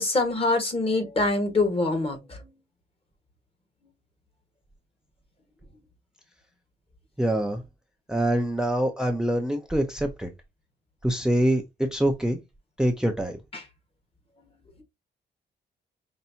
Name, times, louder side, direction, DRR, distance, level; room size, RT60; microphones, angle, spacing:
voice 1, 0.0-2.5 13.5-13.6, left 2 dB, 30° left, 1.5 m, -25 dB
voice 2, 7.2-7.6 8.1-10.3 11.0-11.6 11.9-12.4 12.8-13.4, right 1 dB, 5° right, 0.5 m, -24 dB
5.5 x 2.6 x 2.7 m
cardioid pair, 120°, 18 cm